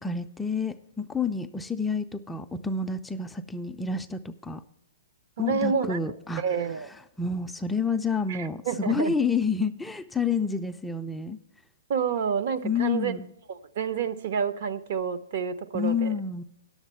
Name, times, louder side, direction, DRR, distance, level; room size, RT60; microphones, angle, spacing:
voice 1, 0.0-4.6 5.4-6.4 7.2-11.4 12.6-13.3 15.7-16.4, left 5 dB, 5° left, 7 dB, 0.4 m, -29 dB
voice 2, 5.4-6.0 6.4-6.9 8.3-9.1 11.9-13.1 13.5-16.1, right 7 dB, 55° right, 11 dB, 0.7 m, -29 dB
10.0 x 7.2 x 5.4 m, 0.80 s
hypercardioid pair, 125°, 0 cm